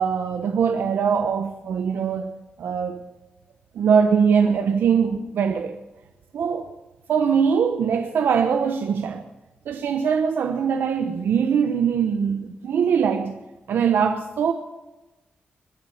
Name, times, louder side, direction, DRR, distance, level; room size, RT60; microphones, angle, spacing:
voice 1, 0.0-2.3 2.6-3.0 3.7-5.8 6.3-6.7 7.1-9.2 9.7-13.4 13.7-14.5, right 6 dB, 80° right, 0.9 m, -22 dB
21.0 x 7.4 x 7.1 m
wide cardioid pair, 125°, 4 cm